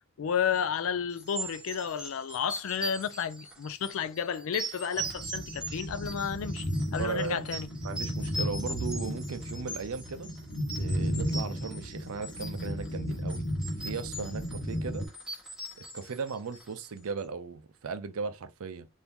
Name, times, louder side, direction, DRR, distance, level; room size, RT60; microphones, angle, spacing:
voice 1, 0.2-6.7 6.9-7.7, left 7 dB, 65° left, 0.3 m, -32 dB
sound 1, 1.1-17.0, right 2 dB, 5° right, 1.0 m, -41 dB
sound 2, 5.0-15.1, equal, 80° left, 1.2 m, -34 dB
voice 2, 7.0-7.4 7.8-10.3 10.8-13.5 13.8-15.1 15.8-18.9, right 5 dB, 70° right, 0.5 m, -37 dB
3.5 x 2.6 x 2.9 m
head